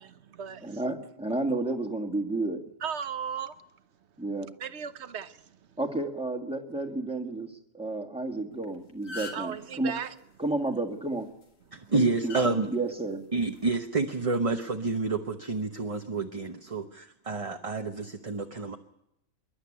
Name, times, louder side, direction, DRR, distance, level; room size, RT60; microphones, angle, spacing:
voice 1, 0.0-0.8 2.8-3.5 4.6-5.3 9.3-10.1, right 7 dB, 55° right, 11 dB, 1.2 m, -36 dB
voice 2, 0.6-2.6 4.2-4.5 5.8-9.9 10.4-11.3 11.9-13.2, right 2 dB, 5° right, 3 dB, 1.8 m, -31 dB
sound 1, 8.5-8.6 8.9-9.6 11.2-11.4 12.3-12.5 13.5-13.7, left 3 dB, 70° left, 2.9 m, -39 dB
voice 3, 11.7-12.7 13.3-18.8, right 3 dB, 30° right, 4 dB, 0.9 m, -29 dB
26.0 x 11.5 x 10.0 m, 0.84 s
omnidirectional pair, 1.4 m